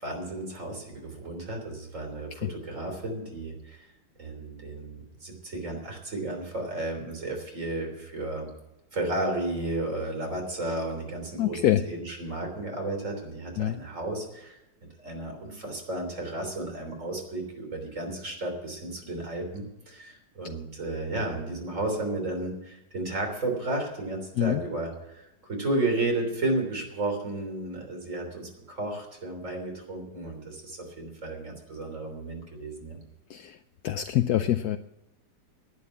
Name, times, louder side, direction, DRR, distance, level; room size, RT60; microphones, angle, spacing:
voice 1, 0.0-3.9 4.2-8.5 8.9-14.6 15.0-33.0, right 2 dB, 40° right, 2 dB, 3.8 m, -33 dB
voice 2, 11.4-11.8 13.6-13.8 24.4-24.6 33.3-33.6 33.8-34.8, left 12 dB, 70° left, 10 dB, 1.0 m, -25 dB
11.5 x 9.6 x 8.3 m, 0.95 s
omnidirectional pair, 2.0 m